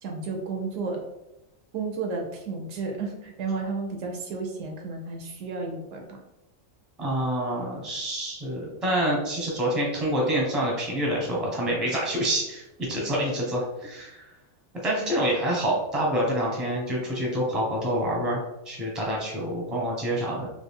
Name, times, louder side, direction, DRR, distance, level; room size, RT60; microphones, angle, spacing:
voice 1, 0.0-1.1 1.7-6.2, right 4 dB, 70° right, 2 dB, 1.0 m, -32 dB
voice 2, 7.0-14.2 14.8-20.5, right 1 dB, ahead, -3 dB, 0.6 m, -27 dB
3.2 x 2.4 x 3.4 m, 0.91 s
omnidirectional pair, 1.4 m